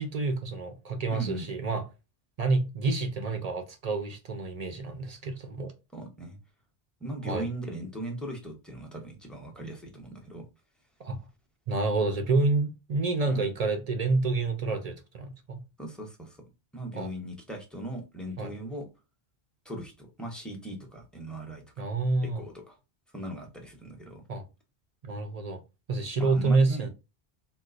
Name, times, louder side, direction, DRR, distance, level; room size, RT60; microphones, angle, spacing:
voice 1, 0.0-1.8 2.4-5.7 7.3-7.5 11.0-11.2 11.7-15.6 16.9-17.1 18.4-18.5 21.8-22.4 24.3-24.5 25.0-25.6 25.9-26.9, right 3 dB, 50° right, 0.5 m, -28 dB
voice 2, 1.1-1.5 5.9-6.4 7.0-10.4 13.3-13.5 15.8-16.4 16.7-18.9 19.6-21.9 22.2-22.8 23.1-24.2 26.1-26.9, right 1 dB, ahead, 0.6 m, -39 dB
3.8 x 2.3 x 2.4 m
omnidirectional pair, 1.1 m